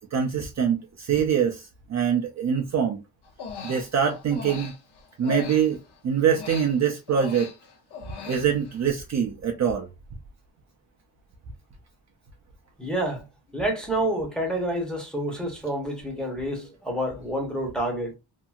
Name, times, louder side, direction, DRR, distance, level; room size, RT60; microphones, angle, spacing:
voice 1, 0.0-3.0 3.6-4.7 5.2-5.8 6.0-7.5 8.3-9.9, right 7 dB, 40° right, 0.5 m, -24 dB
Human voice, 3.2-6.0 6.3-8.8, left 6 dB, 70° left, 0.8 m, -39 dB
voice 2, 12.8-13.2 13.5-18.2, right 1 dB, ahead, 0.8 m, -28 dB
2.8 x 2.5 x 2.3 m
wide cardioid pair, 150°, 42 cm